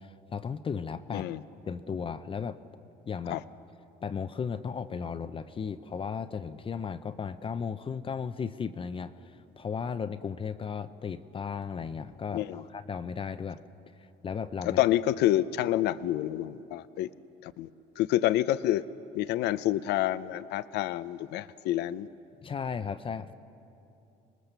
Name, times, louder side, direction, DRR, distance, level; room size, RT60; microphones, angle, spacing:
voice 1, 0.0-1.3 1.7-2.6 3.1-3.4 4.0-13.6 14.0-14.8 22.4-23.3, left 6 dB, 30° left, 10 dB, 0.6 m, -35 dB
voice 2, 14.7-17.1 17.4-17.7 18.0-18.8 19.1-22.1, left 13 dB, 85° left, 15 dB, 0.5 m, -28 dB
26.5 x 20.0 x 6.8 m, 2.8 s
cardioid pair, 110°, 17 cm